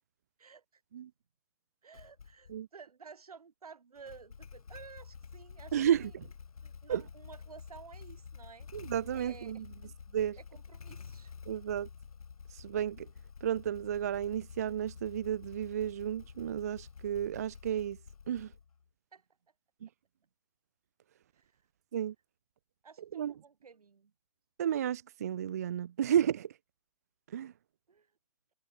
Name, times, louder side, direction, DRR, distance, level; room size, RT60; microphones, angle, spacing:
voice 1, 0.4-0.8 1.8-6.1 6.6-8.7 9.1-9.6 10.4-11.3 19.1-19.2 21.3-21.5 22.8-24.1 27.9-28.1, right 5 dB, 85° right, 4.7 m, -53 dB
Motorcycle / Engine starting, 1.9-2.6 4.0-18.9, left 6 dB, 75° left, 4.8 m, -50 dB
voice 2, 5.7-6.2 6.9-7.0 8.7-9.6 10.1-10.4 11.5-11.9 12.5-13.1 13.4-18.0 18.3-18.5 21.9-22.1 23.1-23.3 24.6-26.5 27.3-27.5, right 9 dB, 25° right, 0.5 m, -32 dB
hypercardioid pair, 170°, 19 cm